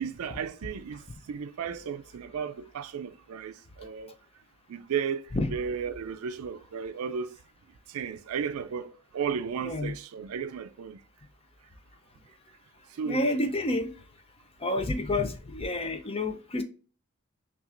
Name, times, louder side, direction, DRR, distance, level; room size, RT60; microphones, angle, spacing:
voice 1, 0.0-4.2 4.7-7.4 7.9-11.0 12.9-13.4, right 7 dB, 85° right, 0.4 m, -34 dB
voice 2, 9.6-9.9 13.0-13.9 14.6-16.6, left 2 dB, 25° left, 0.5 m, -29 dB
5.7 x 2.4 x 2.4 m
head